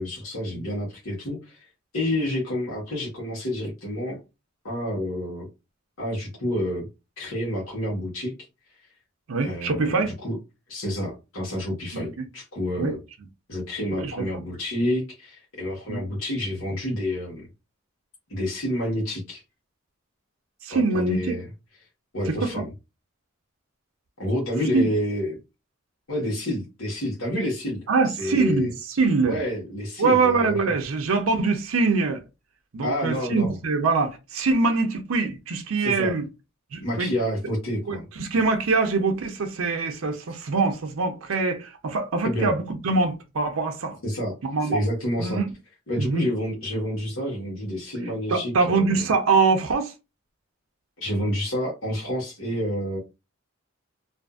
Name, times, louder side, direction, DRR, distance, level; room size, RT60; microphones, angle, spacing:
voice 1, 0.0-1.6 1.9-4.2 4.6-5.5 6.0-6.9 7.2-8.3 9.4-10.4 10.7-13.0 13.5-17.5 18.3-19.4 20.7-21.5 22.1-22.7 24.2-25.4 26.1-27.8 28.2-28.7 29.2-30.6 32.8-33.6 35.8-36.1 36.8-38.0 42.2-42.5 44.0-45.4 45.9-49.1 51.0-53.0, left 1 dB, 75° left, 1.2 m, -29 dB
voice 2, 9.3-10.1 11.9-12.3 12.8-12.9 14.0-14.3 15.9-16.0 20.6-21.4 22.3-22.5 24.7-24.9 27.9-29.4 30.0-32.2 32.7-36.3 36.7-37.1 37.9-44.0 44.4-44.8 45.2-45.5 46.0-46.2 48.3-49.9, right 4 dB, 85° right, 0.6 m, -24 dB
2.5 x 2.5 x 2.4 m
head